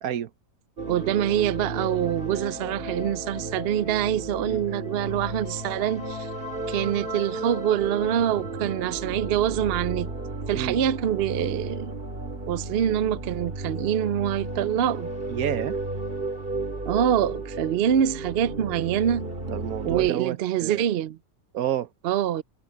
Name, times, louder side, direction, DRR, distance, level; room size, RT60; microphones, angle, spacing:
sound 1, 0.8-20.1, right 2 dB, 40° right, 2.9 m, -33 dB
voice 1, 0.9-6.3 6.7-10.1 10.5-12.0 12.5-15.1 16.9-19.3 19.8-21.2 22.0-22.4, right 10 dB, 55° right, 0.7 m, -25 dB
voice 2, 15.3-15.8 19.5-20.9 21.5-21.9, right 11 dB, 80° right, 1.3 m, -29 dB
omnidirectional pair, 1.5 m